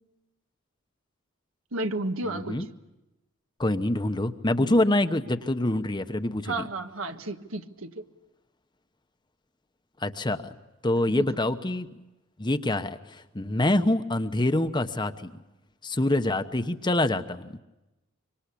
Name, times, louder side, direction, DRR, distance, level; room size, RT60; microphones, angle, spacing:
voice 1, 1.7-2.7 4.6-4.8 6.4-8.0 11.0-11.2 13.7-13.9, right 2 dB, 80° right, 6 dB, 1.6 m, -33 dB
voice 2, 2.2-2.7 3.6-6.7 10.0-10.4 10.8-11.9 12.4-15.3 15.8-17.5, left 1 dB, 20° left, 9 dB, 1.0 m, -26 dB
25.0 x 25.0 x 8.5 m, 1.0 s
head